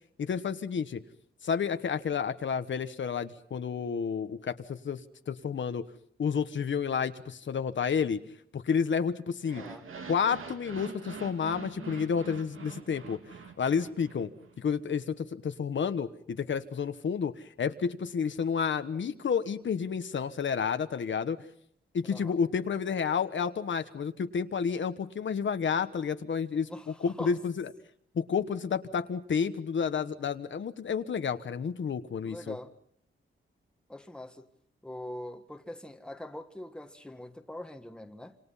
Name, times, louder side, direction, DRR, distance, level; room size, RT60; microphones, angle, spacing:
voice 1, 0.2-1.0 1.4-5.9 6.2-8.2 8.5-9.6 10.1-14.3 14.6-21.4 21.9-26.7 27.0-27.7 28.1-32.5, left 6 dB, 65° left, 1.2 m, -30 dB
sound 1, 9.4-14.6, right 5 dB, 80° right, 2.6 m, -45 dB
voice 2, 9.6-9.9 22.1-22.4 26.6-27.4 32.2-32.7 33.9-34.5 34.8-38.4, left 1 dB, 5° left, 1.6 m, -43 dB
27.5 x 27.5 x 5.7 m
wide cardioid pair, 165°, 21 cm